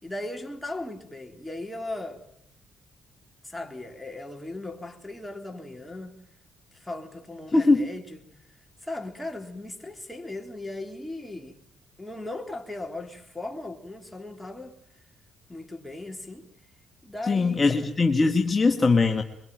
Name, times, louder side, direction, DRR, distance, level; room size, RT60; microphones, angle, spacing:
voice 1, 0.0-2.2 3.4-6.2 6.7-8.3 8.8-11.6 12.0-14.8 15.5-16.5 17.0-17.8, left 2 dB, 5° left, 3.7 m, -37 dB
voice 2, 7.5-7.9 17.3-19.2, left 3 dB, 30° left, 1.8 m, -21 dB
23.5 x 22.5 x 9.3 m
cardioid pair, 90°, 0 cm